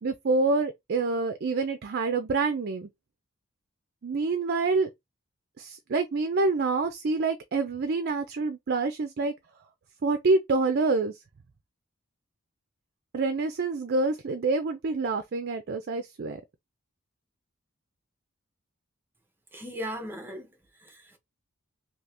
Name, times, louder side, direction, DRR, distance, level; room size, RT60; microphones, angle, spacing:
voice 1, 0.0-2.9 4.0-4.9 5.6-9.3 10.0-11.1 13.1-16.4, right 3 dB, 50° right, 0.4 m, -27 dB
voice 2, 19.5-20.5 20.8-21.2, equal, 10° right, 0.8 m, -37 dB
2.8 x 2.7 x 3.3 m
head